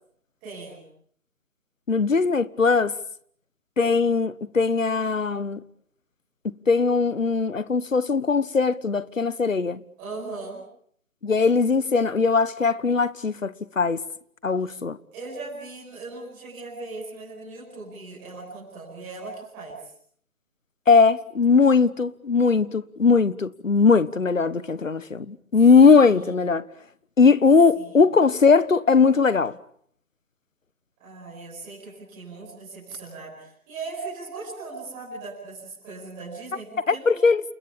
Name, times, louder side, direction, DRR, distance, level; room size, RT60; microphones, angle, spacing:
voice 1, 0.4-0.9 10.0-10.6 15.1-19.9 25.9-26.4 27.7-28.0 31.0-37.3, right 3 dB, 5° right, 5.7 m, -38 dB
voice 2, 1.9-2.9 3.8-5.6 6.4-9.8 11.2-14.0 14.4-15.0 20.9-26.7 27.2-29.6 36.9-37.4, left 4 dB, 65° left, 1.4 m, -20 dB
29.0 x 20.5 x 8.7 m
figure-of-eight pair, 180°, 43 cm